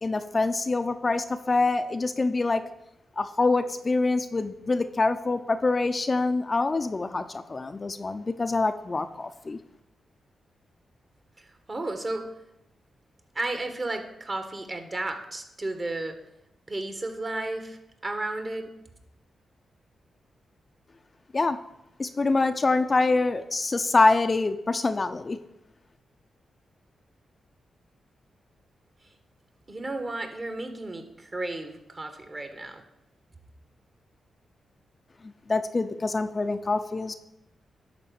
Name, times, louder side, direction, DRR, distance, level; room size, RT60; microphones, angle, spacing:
voice 1, 0.0-2.6 3.2-9.6 21.3-21.6 22.0-25.4 35.5-37.1, left 3 dB, 35° left, 8 dB, 0.6 m, -25 dB
voice 2, 11.4-12.3 13.3-16.2 16.7-18.7 29.7-32.8, right 2 dB, 40° right, 6 dB, 1.7 m, -33 dB
11.0 x 4.1 x 7.1 m, 0.87 s
cardioid pair, 60°, 0 cm